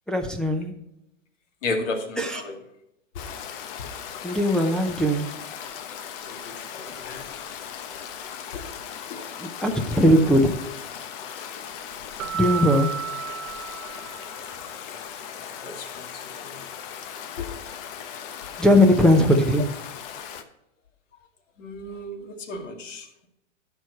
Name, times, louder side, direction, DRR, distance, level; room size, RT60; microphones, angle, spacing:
voice 1, 0.1-0.7 2.2-2.4 4.2-5.3 9.4-10.6 12.3-12.9 18.6-19.7, left 1 dB, ahead, 1 dB, 0.6 m, -19 dB
voice 2, 1.6-2.6 6.2-7.3 8.5-8.6 9.1-9.2 15.6-16.6 17.4-17.5 21.6-23.3, left 3 dB, 75° left, 3 dB, 2.2 m, -34 dB
Stream, 3.2-20.4, left 8 dB, 50° left, 1.1 m, -38 dB
Keyboard (musical), 12.2-14.6, right 9 dB, 85° right, 0.7 m, -32 dB
11.5 x 4.7 x 5.8 m, 0.83 s
hypercardioid pair, 140°, 37 cm